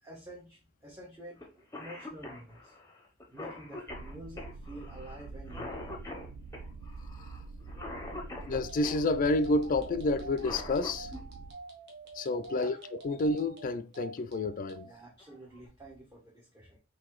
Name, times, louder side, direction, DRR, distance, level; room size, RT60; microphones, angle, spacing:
voice 1, 0.0-2.7 3.3-6.0 8.3-8.4 12.5-12.8 14.8-16.8, right 1 dB, 15° right, 0.8 m, -49 dB
Cough, 1.4-1.5 1.7-9.0 10.2-11.2 12.8-12.9 14.0-14.3 14.7-14.8 15.2-15.7, left 2 dB, 15° left, 0.7 m, -44 dB
sound 1, 3.9-11.5, right 3 dB, 85° right, 0.4 m, -46 dB
voice 2, 8.5-11.1 12.1-12.8 13.0-14.9, left 2 dB, 40° left, 0.3 m, -29 dB
sound 2, 8.6-14.9, right 4 dB, 55° right, 1.0 m, -48 dB
3.9 x 2.8 x 3.0 m
head